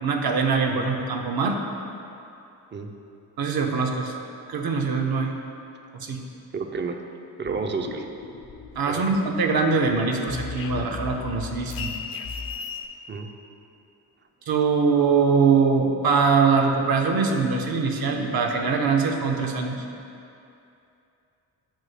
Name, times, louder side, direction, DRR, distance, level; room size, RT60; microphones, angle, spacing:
voice 1, 0.0-1.6 3.4-4.1 4.5-5.3 5.9-6.2 8.7-11.9 14.5-19.8, right 5 dB, 50° right, 3 dB, 0.8 m, -22 dB
voice 2, 6.5-7.0 7.4-8.1 8.9-9.0 13.1-13.3, right 4 dB, 25° right, 5 dB, 0.5 m, -30 dB
sound 1, 7.4-9.1 9.5-12.9, left 5 dB, 45° left, 0.6 m, -36 dB
7.1 x 2.7 x 5.6 m, 2.7 s
hypercardioid pair, 40°, 48 cm